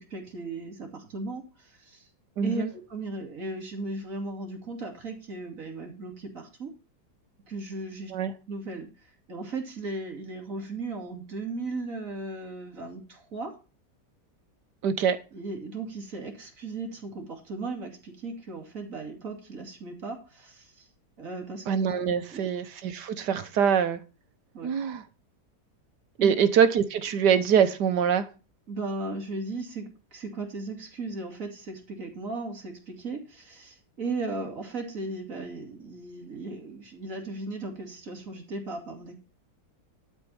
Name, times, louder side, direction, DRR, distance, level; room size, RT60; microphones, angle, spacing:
voice 1, 0.0-2.1 2.4-6.8 7.5-8.1 8.5-13.6 15.3-20.9 21.2-21.6 22.2-22.5 24.5-24.7 26.2-26.3 28.7-39.1, right 3 dB, 50° right, 2.8 m, -36 dB
voice 2, 2.4-2.7 8.1-8.3 14.8-15.2 21.7-24.0 24.6-25.0 26.2-28.3, right 7 dB, 70° right, 1.6 m, -24 dB
12.0 x 4.8 x 7.0 m
omnidirectional pair, 1.9 m